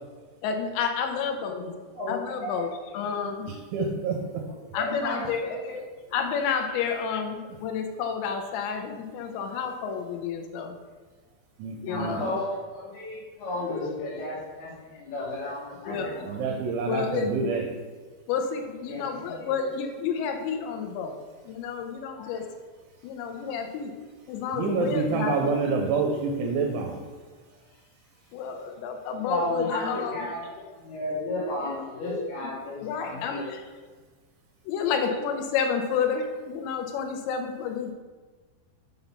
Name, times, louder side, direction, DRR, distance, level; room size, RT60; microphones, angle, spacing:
voice 1, 0.4-1.6 2.1-3.5 4.7-5.5 6.1-10.8 11.8-12.2 15.9-16.1 16.9-17.3 18.3-21.2 21.5-22.4 23.0-23.9 24.3-25.7 28.3-30.1 32.8-33.6 34.7-37.9, left 6 dB, 85° left, 4 dB, 2.7 m, -30 dB
voice 2, 1.5-3.1 4.7-5.8 11.8-16.4 18.8-19.7 22.1-22.4 23.3-23.7 29.2-33.5, left 1 dB, 65° left, -6 dB, 3.2 m, -34 dB
voice 3, 3.5-4.4 11.6-12.2 15.9-17.7 24.5-27.0, right 4 dB, 80° right, 1 dB, 3.0 m, -28 dB
7.2 x 3.9 x 5.5 m, 1.4 s
omnidirectional pair, 5.5 m